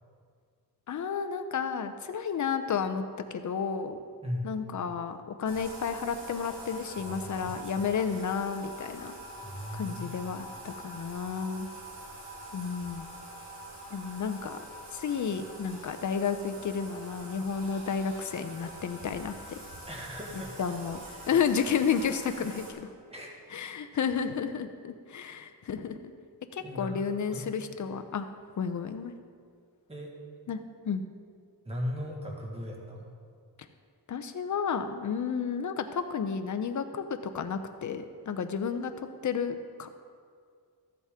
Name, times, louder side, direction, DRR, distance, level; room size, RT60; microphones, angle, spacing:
voice 1, 0.9-3.0 3.3-4.0 4.4-9.1 9.7-11.7 12.5-13.1 13.9-14.6 14.9-19.6 20.3-21.0 21.3-22.9 23.5-26.1 26.5-28.3 28.6-29.1 30.5-30.6 30.8-31.0 34.1-37.0 37.3-39.9, left 6 dB, 45° left, 9 dB, 0.7 m, -32 dB
voice 2, 4.2-4.5 7.0-7.9 9.4-10.1 19.9-20.5 21.1-21.3 23.1-23.3 26.6-27.4 29.9-30.1 31.7-33.1, left 1 dB, 15° right, -1 dB, 1.8 m, -38 dB
Bathtub (filling or washing), 5.5-22.7, right 1 dB, 85° right, 2.7 m, -45 dB
14.0 x 8.2 x 3.7 m, 2.2 s
cardioid pair, 110°, 41 cm